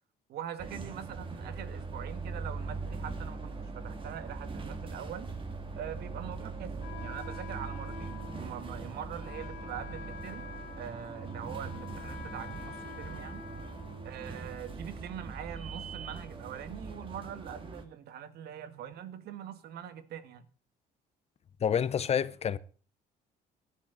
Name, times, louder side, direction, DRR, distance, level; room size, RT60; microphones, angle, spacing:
voice 1, 0.3-5.3 5.7-6.7 7.0-10.5 10.8-13.5 14.0-20.5, right 9 dB, 70° right, 1.8 m, -43 dB
sound 1, 0.6-17.8, right 4 dB, 30° right, 2.4 m, -41 dB
Wind instrument woodwind instrument, 6.8-14.5, left 9 dB, 85° left, 2.5 m, -48 dB
voice 2, 21.6-22.6, left 8 dB, 40° left, 0.9 m, -28 dB
17.5 x 12.0 x 4.1 m
cardioid pair, 110°, 17 cm